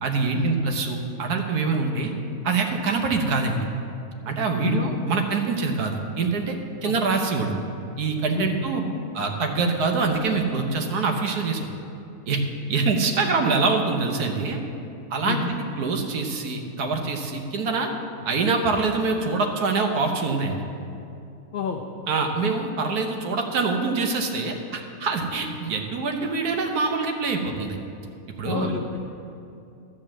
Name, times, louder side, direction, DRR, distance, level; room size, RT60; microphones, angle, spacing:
voice 1, 0.0-2.1 2.4-3.7 4.3-6.6 6.8-7.5 8.0-8.8 9.1-11.7 12.3-12.4 12.7-14.6 15.1-17.9 18.2-20.6 22.1-27.8 28.4-28.7, right 4 dB, 75° right, 4 dB, 1.5 m, -25 dB
voice 2, 21.5-21.8 25.5-25.6 28.4-29.0, left 7 dB, 65° left, 1 dB, 0.5 m, -28 dB
12.5 x 5.1 x 7.4 m, 2.7 s
omnidirectional pair, 1.7 m